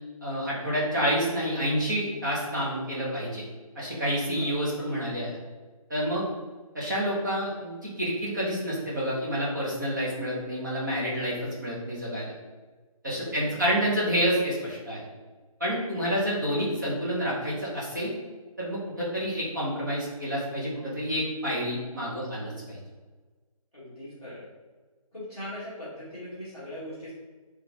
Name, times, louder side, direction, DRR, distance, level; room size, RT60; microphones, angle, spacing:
voice 1, 0.2-3.4 3.7-5.3 5.9-6.2 6.7-12.3 13.0-15.1 15.6-18.1 18.6-22.8, equal, 30° right, -7 dB, 1.0 m, -29 dB
voice 2, 13.2-13.6 15.9-16.1 23.7-24.5 25.1-27.1, left 1 dB, 5° right, -19 dB, 1.1 m, -40 dB
4.0 x 3.2 x 3.4 m, 1.3 s
hypercardioid pair, 180°, 19 cm